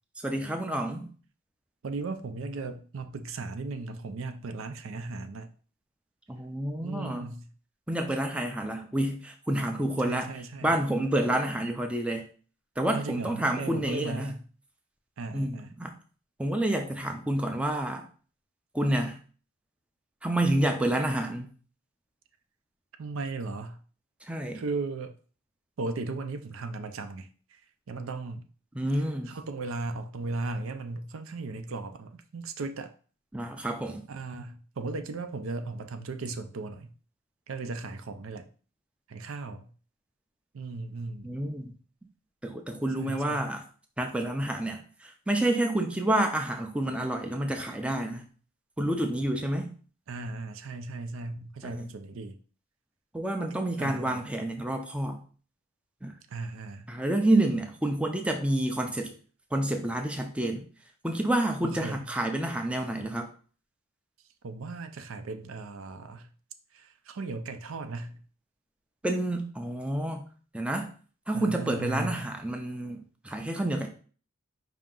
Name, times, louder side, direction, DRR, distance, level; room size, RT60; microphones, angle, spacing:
voice 1, 0.2-1.1 6.3-7.3 7.9-10.3 10.6-12.2 12.8-14.3 15.3-15.9 16.4-18.0 18.7-19.2 20.2-21.5 24.3-24.6 28.7-29.3 33.3-34.0 41.2-41.7 42.4-43.6 44.0-48.2 48.8-49.7 51.6-51.9 53.1-55.2 56.0-56.1 56.9-59.1 59.5-60.6 61.0-63.3 69.0-70.2 70.5-70.9 71.3-73.9, right 1 dB, 5° right, 0.4 m, -29 dB
voice 2, 1.8-5.5 6.8-7.5 10.0-10.8 12.9-14.4 15.2-15.7 23.0-23.8 24.5-25.1 25.8-27.6 27.9-28.4 29.3-32.9 34.1-36.9 37.5-38.5 39.1-39.7 40.5-41.3 43.0-43.5 50.1-52.4 53.7-54.3 56.3-56.9 61.6-62.1 64.4-66.3 66.7-68.2 71.3-72.3, right 3 dB, 80° right, 0.5 m, -36 dB
5.0 x 2.8 x 3.7 m
head